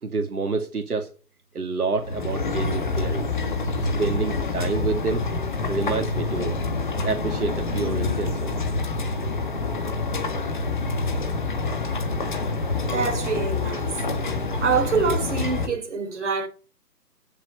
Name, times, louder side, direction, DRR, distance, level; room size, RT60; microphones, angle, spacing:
voice 1, 0.0-1.1 1.5-3.3 3.8-5.2 5.7-6.6 7.0-8.7, right 4 dB, 60° right, 2.5 m, -28 dB
sound 1, 2.0-15.7, left 3 dB, 30° left, 1.7 m, -27 dB
voice 2, 12.8-14.0 14.6-16.5, right 5 dB, 45° right, 3.5 m, -26 dB
16.0 x 7.7 x 6.9 m
hypercardioid pair, 175°, 49 cm